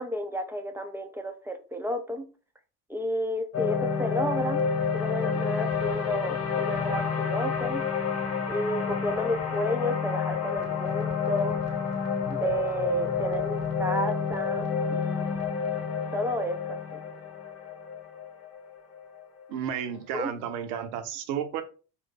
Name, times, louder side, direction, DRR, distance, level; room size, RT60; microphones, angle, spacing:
voice 1, 0.0-2.3 2.9-4.6 4.9-7.8 8.5-11.6 12.3-15.4 16.1-17.0 20.1-20.3, equal, 5° right, 0.6 m, -32 dB
sound 1, 3.5-19.8, left 6 dB, 30° left, 1.2 m, -29 dB
voice 2, 19.5-21.6, right 8 dB, 60° right, 1.0 m, -32 dB
4.1 x 2.6 x 3.8 m
hypercardioid pair, 75°, 50 cm